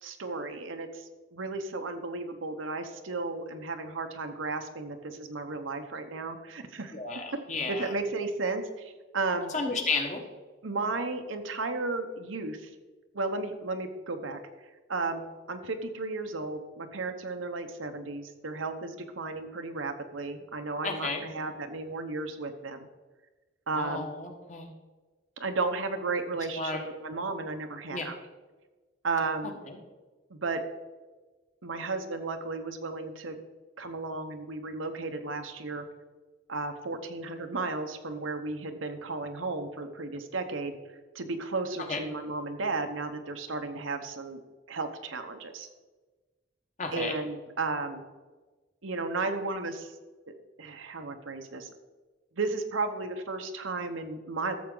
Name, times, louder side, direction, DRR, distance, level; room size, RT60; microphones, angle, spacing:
voice 1, 0.0-6.9 7.7-9.5 10.6-12.7 13.1-14.4 14.9-22.9 23.7-24.1 25.4-28.1 29.0-29.6 30.3-30.6 31.6-33.4 33.8-35.8 36.5-40.8 41.1-44.4 44.7-45.7 46.9-48.0 48.8-49.9 50.3-51.7 52.3-54.6, right 3 dB, 85° right, 6 dB, 1.0 m, -34 dB
voice 2, 6.9-7.9 9.5-10.2 20.8-21.2 23.7-24.7 26.5-26.8 27.9-28.1 29.7-29.8 41.9-42.0 46.8-47.1, left 4 dB, 40° left, 3 dB, 1.2 m, -32 dB
13.5 x 7.2 x 3.9 m, 1.3 s
head